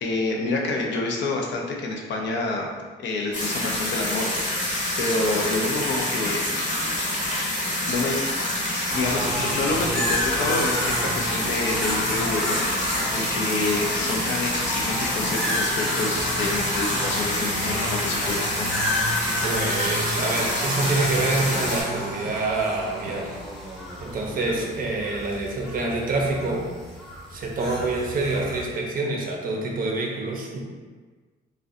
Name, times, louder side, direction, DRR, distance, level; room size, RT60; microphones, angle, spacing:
voice 1, 0.0-2.7 3.0-6.5 7.9-8.2 8.9-12.6 13.1-18.7, left 3 dB, 65° left, 0 dB, 0.5 m, -28 dB
sound 1, 3.3-21.8, left 1 dB, 40° left, 0.8 m, -27 dB
sound 2, 8.9-28.7, equal, ahead, 0.8 m, -31 dB
voice 2, 19.4-23.4 24.0-26.7 27.3-30.6, right 2 dB, 45° right, 0 dB, 0.5 m, -26 dB
2.5 x 2.1 x 2.4 m, 1.4 s
cardioid pair, 90°, 20 cm